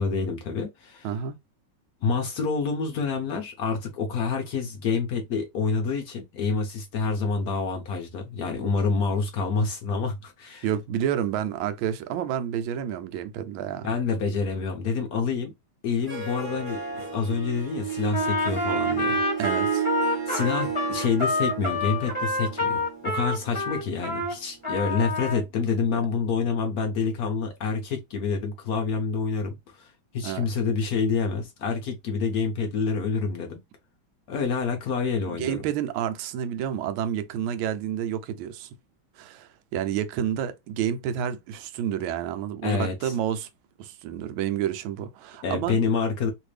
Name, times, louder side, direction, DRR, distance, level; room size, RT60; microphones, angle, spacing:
voice 1, 0.0-1.1 2.0-10.7 13.8-15.5 15.8-16.8 17.1-19.2 20.3-29.9 30.1-33.6 34.3-35.6 42.6-43.1 45.4-46.3, left 5 dB, 65° left, 0.9 m, -27 dB
voice 2, 1.0-1.4 10.6-13.9 19.4-19.8 30.2-30.5 35.3-38.7 39.2-43.5 43.8-45.8, right 10 dB, 80° right, 1.3 m, -29 dB
Harp, 15.9-24.5, right 7 dB, 30° right, 1.0 m, -33 dB
Trumpet, 18.1-24.3 24.6-25.4, left 2 dB, 20° left, 1.1 m, -28 dB
3.3 x 2.5 x 3.2 m
omnidirectional pair, 2.3 m